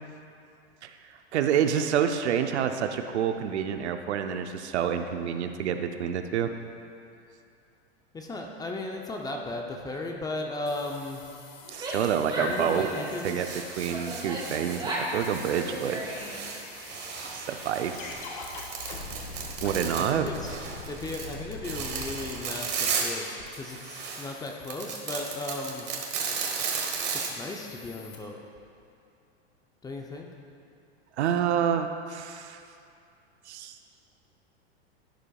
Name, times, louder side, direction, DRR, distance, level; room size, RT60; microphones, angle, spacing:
voice 1, 1.3-6.5 11.7-12.9 13.2-13.5 13.8-16.1 17.3-18.2 19.6-20.3 31.2-32.6 33.5-33.8, right 8 dB, 85° right, 7 dB, 0.7 m, -28 dB
voice 2, 8.1-11.2 12.4-13.6 20.0-25.9 27.2-28.4 29.8-30.3, left 2 dB, 10° left, 1 dB, 0.6 m, -36 dB
sound 1, 10.7-28.2, left 4 dB, 55° left, 1.5 m, -45 dB
Female speech woman speaking / Yell, 11.6-13.3 13.9-15.2 15.5-16.4, right 1 dB, 15° right, 2.1 m, -34 dB
sound 2, 13.2-14.8 15.1-23.2 23.5-27.3, right 6 dB, 30° right, 1.3 m, -35 dB
11.5 x 10.0 x 2.4 m, 2.5 s
hypercardioid pair, 120°, 33 cm